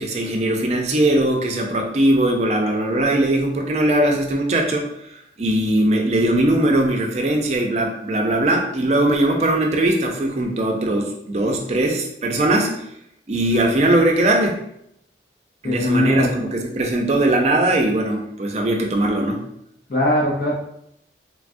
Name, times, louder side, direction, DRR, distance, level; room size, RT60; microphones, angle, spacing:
voice 1, 0.0-4.9 5.4-12.7 13.3-14.6 15.6-19.4, right 1 dB, 40° right, 1 dB, 0.4 m, -20 dB
voice 2, 15.6-16.3 19.9-20.5, left 1 dB, 50° left, -4 dB, 0.6 m, -20 dB
3.3 x 2.3 x 2.5 m, 0.76 s
head